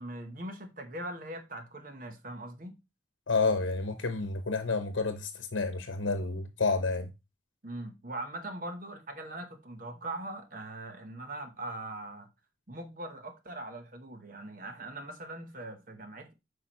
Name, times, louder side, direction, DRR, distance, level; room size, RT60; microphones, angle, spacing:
voice 1, 0.0-2.7 7.6-12.3 12.7-16.3, right 1 dB, 45° right, 1.1 m, -41 dB
voice 2, 3.3-7.1, left 3 dB, 90° left, 0.9 m, -30 dB
8.2 x 5.0 x 3.1 m
head